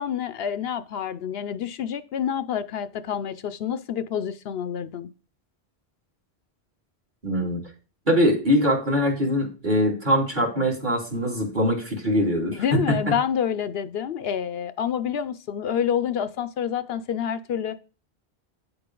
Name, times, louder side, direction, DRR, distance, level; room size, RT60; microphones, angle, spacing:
voice 1, 0.0-5.1 12.5-17.8, left 8 dB, 70° left, 14 dB, 0.8 m, -28 dB
voice 2, 7.2-7.6 8.1-12.6, equal, 45° right, -1 dB, 3.1 m, -22 dB
9.3 x 7.8 x 3.8 m, 0.34 s
omnidirectional pair, 1.1 m